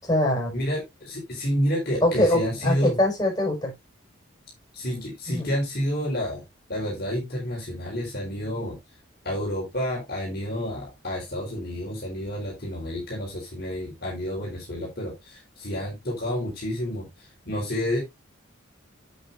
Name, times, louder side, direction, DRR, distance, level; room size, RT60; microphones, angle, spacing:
voice 1, 0.0-0.5 2.0-3.7 5.3-5.5, left 1 dB, 20° left, 5.6 m, -23 dB
voice 2, 0.5-3.0 4.7-6.4 6.7-8.8 9.2-18.0, equal, 50° left, 4.4 m, -29 dB
8.9 x 8.4 x 2.6 m
head